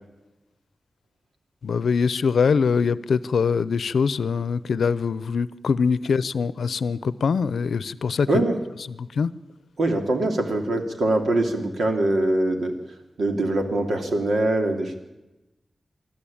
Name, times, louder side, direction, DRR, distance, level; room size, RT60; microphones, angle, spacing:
voice 1, 1.6-8.3 8.9-9.3, left 5 dB, 90° left, 18 dB, 0.6 m, -23 dB
voice 2, 9.8-12.7 13.2-14.9, right 2 dB, 80° right, 4 dB, 2.9 m, -23 dB
24.0 x 13.0 x 8.7 m, 1.0 s
wide cardioid pair, 80°, 0 cm